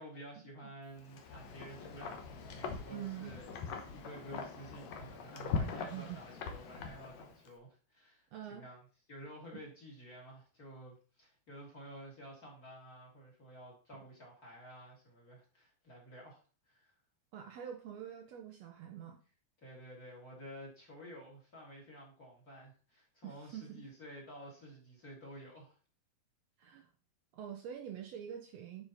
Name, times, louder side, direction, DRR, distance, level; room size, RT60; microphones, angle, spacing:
voice 1, 0.0-8.8 9.1-17.0 19.6-25.8, equal, 25° left, -1 dB, 2.7 m, -52 dB
Wind, 1.0-7.5, left 5 dB, 60° left, 2.0 m, -42 dB
voice 2, 2.9-3.3 5.6-6.2 8.3-8.7 9.5-9.6 17.3-19.2 23.2-23.8 26.6-26.9 27.3-28.9, right 10 dB, 80° right, 3 dB, 1.5 m, -45 dB
9.3 x 5.1 x 4.1 m, 0.38 s
omnidirectional pair, 4.1 m